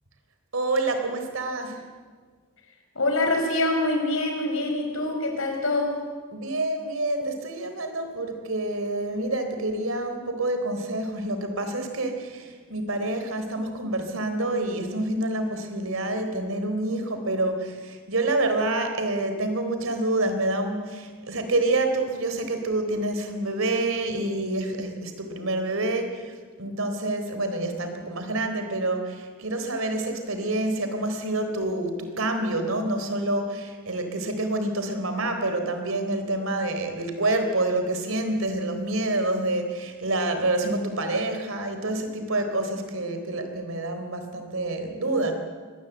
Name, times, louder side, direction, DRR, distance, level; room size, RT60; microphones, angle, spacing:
voice 1, 0.5-1.9 6.3-45.3, right 2 dB, 75° right, 6 dB, 3.8 m, -27 dB
voice 2, 2.9-6.0, left 2 dB, 70° left, 3 dB, 5.5 m, -25 dB
23.5 x 19.0 x 8.2 m, 1.5 s
head